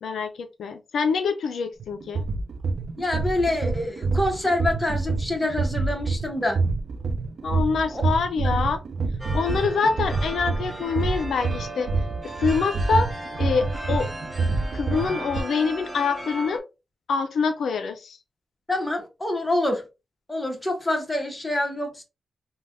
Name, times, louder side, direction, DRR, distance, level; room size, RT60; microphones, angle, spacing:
voice 1, 0.0-2.2 7.4-8.8 9.3-11.9 12.4-13.1 13.4-14.1 14.7-16.6 17.1-18.2, left 5 dB, 90° left, 0.4 m, -25 dB
sound 1, 1.8-15.4, right 3 dB, 70° right, 0.4 m, -27 dB
voice 2, 3.0-6.6 7.9-8.0 18.7-19.8 20.3-22.0, left 1 dB, 15° left, 0.9 m, -26 dB
sound 2, 9.2-16.6, right 1 dB, 15° right, 0.6 m, -37 dB
3.2 x 2.1 x 2.5 m
wide cardioid pair, 95°, 0 cm